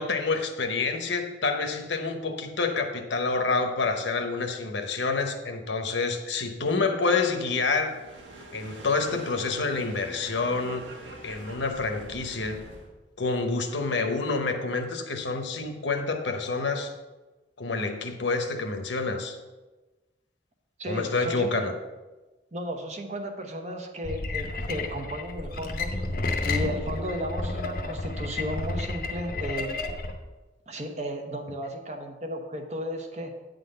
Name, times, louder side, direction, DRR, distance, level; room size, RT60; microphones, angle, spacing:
voice 1, 0.0-8.0 8.5-10.9 11.2-12.6 13.2-16.9 17.6-19.4 20.9-21.7, left 4 dB, 70° left, 5 dB, 0.9 m, -28 dB
sound 1, 7.7-12.9, right 1 dB, 90° right, 1.5 m, -45 dB
voice 2, 20.8-21.5 22.5-25.9 26.4-29.7 30.7-33.4, equal, 35° right, 3 dB, 0.9 m, -34 dB
sound 2, 24.0-30.1, left 2 dB, 50° left, 0.7 m, -31 dB
9.2 x 3.9 x 6.6 m, 1.2 s
head